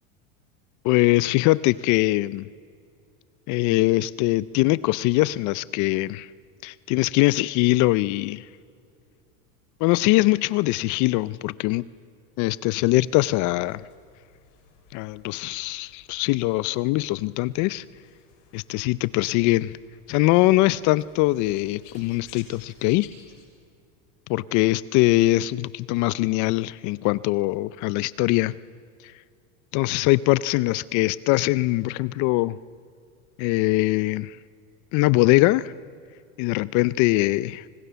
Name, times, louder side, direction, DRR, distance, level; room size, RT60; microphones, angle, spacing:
voice 1, 0.8-2.5 3.5-6.3 6.6-8.5 9.8-11.9 12.4-13.8 14.9-17.8 18.5-19.8 20.1-23.1 24.3-28.6 29.0-29.1 29.7-32.6 33.4-34.4 34.9-35.7 36.4-37.7, left 19 dB, 45° left, 19 dB, 0.6 m, -22 dB
sound 1, 12.7-23.4, left 6 dB, 70° left, 7.5 m, -55 dB
29.5 x 26.5 x 6.9 m, 2.3 s
supercardioid pair, 130°, 40 cm